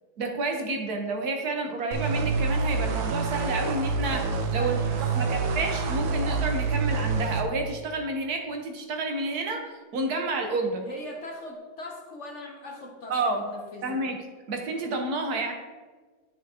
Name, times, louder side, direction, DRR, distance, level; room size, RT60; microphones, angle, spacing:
voice 1, 0.2-4.8 5.1-10.9 13.1-13.4 13.8-14.2 14.5-15.5, right 2 dB, 60° right, 4 dB, 1.4 m, -30 dB
sound 1, 1.9-7.4, right 4 dB, 80° right, 1.6 m, -27 dB
voice 2, 4.6-5.4 10.8-14.0, left 1 dB, 55° left, 0 dB, 0.9 m, -41 dB
11.0 x 6.1 x 2.8 m, 1.4 s
omnidirectional pair, 2.1 m